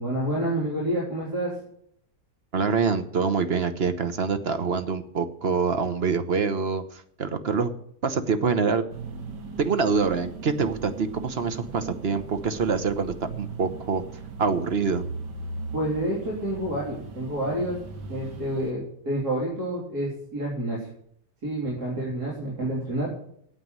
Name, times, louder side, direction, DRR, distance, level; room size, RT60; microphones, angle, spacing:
voice 1, 0.0-1.5 15.7-17.8 18.1-20.8 21.4-23.1, right 1 dB, 65° right, -5 dB, 3.9 m, -28 dB
voice 2, 2.5-7.7 8.0-8.8 9.6-14.0 14.4-15.0, right 5 dB, 40° right, 10 dB, 1.1 m, -25 dB
sound 1, 8.9-18.7, right 4 dB, 85° right, 2.1 m, -38 dB
9.2 x 8.2 x 9.3 m, 0.68 s
omnidirectional pair, 1.8 m